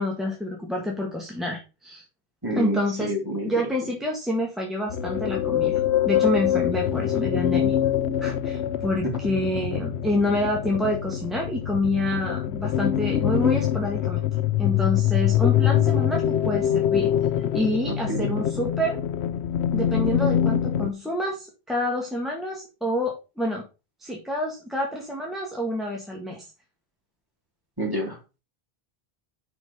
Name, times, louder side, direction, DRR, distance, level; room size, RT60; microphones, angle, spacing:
voice 1, 0.0-2.0 2.5-3.1 3.4-7.8 8.2-14.2 14.6-17.1 17.5-19.0 19.7-23.6 24.0-26.4, left 1 dB, ahead, -2 dB, 1.7 m, -28 dB
voice 2, 2.4-3.5 17.8-18.3 27.8-28.4, right 1 dB, 20° right, 0 dB, 3.0 m, -29 dB
sound 1, 4.9-20.9, left 10 dB, 90° left, 0.9 m, -24 dB
6.1 x 6.0 x 5.5 m, 0.29 s
omnidirectional pair, 1.1 m